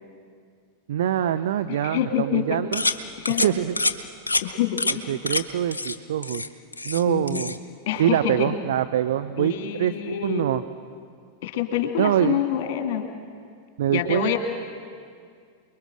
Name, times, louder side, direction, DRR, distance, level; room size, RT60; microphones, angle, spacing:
voice 1, 0.9-2.8 3.4-3.8 5.1-6.4 6.8-7.6 8.0-10.6 12.0-12.4 13.8-14.4, right 11 dB, 60° right, 10 dB, 0.7 m, -24 dB
voice 2, 1.7-2.6 3.3-3.4 4.4-5.1 7.1-7.5 7.9-8.6 9.4-10.5 11.4-13.1 13.9-14.4, left 10 dB, 50° left, 5 dB, 2.6 m, -26 dB
sound 1, 2.7-3.0 3.3-3.5 3.8-4.0 4.3-4.4 4.8-5.0 5.3-5.4 5.7-6.0 6.2-7.0 7.3-7.6, left 3 dB, 80° left, 0.9 m, -26 dB
28.5 x 22.0 x 6.4 m, 2.2 s
figure-of-eight pair, 90°, 0 cm